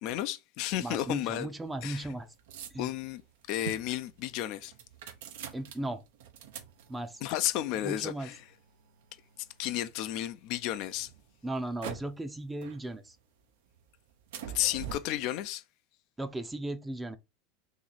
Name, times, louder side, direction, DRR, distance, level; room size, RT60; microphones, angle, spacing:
voice 1, 0.0-1.5 1.8-2.1 2.8-3.2 3.5-4.7 7.2-8.4 9.6-11.1 14.5-15.6, left 13 dB, 55° left, 0.4 m, -32 dB
voice 2, 0.8-2.3 2.7-2.9 5.5-6.0 6.9-7.2 7.8-8.3 11.4-13.2 16.2-17.2, right 1 dB, 10° right, 0.5 m, -36 dB
sound 1, 1.0-10.2 10.7-12.3 12.6-13.4 13.7-14.9, right 8 dB, 75° right, 0.6 m, -46 dB
3.0 x 2.8 x 4.0 m
hypercardioid pair, 110°, 0 cm